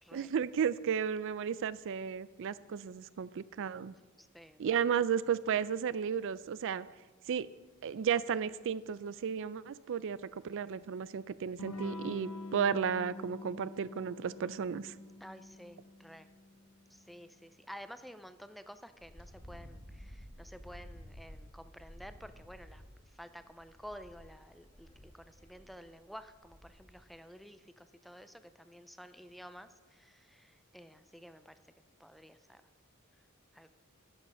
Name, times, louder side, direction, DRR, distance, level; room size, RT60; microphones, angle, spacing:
voice 1, 0.1-3.9 4.6-6.9 7.3-7.5 7.8-10.2 10.4-14.9, right 7 dB, 60° right, 17 dB, 0.4 m, -33 dB
voice 2, 4.2-4.8 15.2-16.3 16.9-22.8 23.1-31.6 32.0-32.6 33.5-33.7, equal, ahead, 11 dB, 0.4 m, -51 dB
Electric guitar / Strum, 11.6-17.0, left 2 dB, 75° left, 1.3 m, -46 dB
Wind, 19.0-27.1, equal, 20° left, 2.1 m, -53 dB
11.5 x 8.5 x 5.4 m, 1.2 s
head